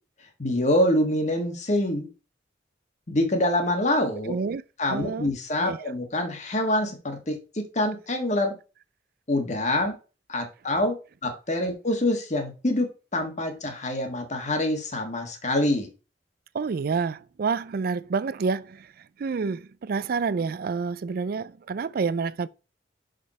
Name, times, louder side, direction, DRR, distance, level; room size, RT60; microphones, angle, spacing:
voice 1, 0.4-2.1 3.1-4.3 4.8-8.5 9.3-10.0 10.3-15.9, left 1 dB, 40° left, 1.5 m, -26 dB
voice 2, 4.3-4.6 4.9-5.3 5.6-5.8 16.5-18.9 19.2-22.5, right 5 dB, 55° right, 0.4 m, -28 dB
6.3 x 5.2 x 4.2 m
head